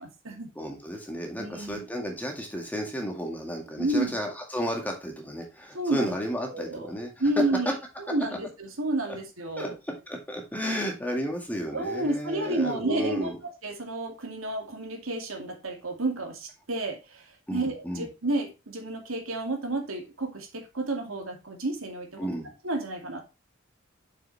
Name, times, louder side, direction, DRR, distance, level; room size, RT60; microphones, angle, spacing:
voice 1, 0.0-0.5 1.4-1.8 3.8-4.2 5.7-6.2 6.5-6.9 7.2-7.7 8.0-9.7 10.7-10.8 11.7-22.3 22.6-23.2, right 2 dB, 85° right, 2.3 m, -31 dB
voice 2, 0.6-7.1 9.6-13.4 17.5-18.1 22.2-22.5, equal, 10° left, 1.9 m, -33 dB
7.1 x 6.4 x 3.3 m
head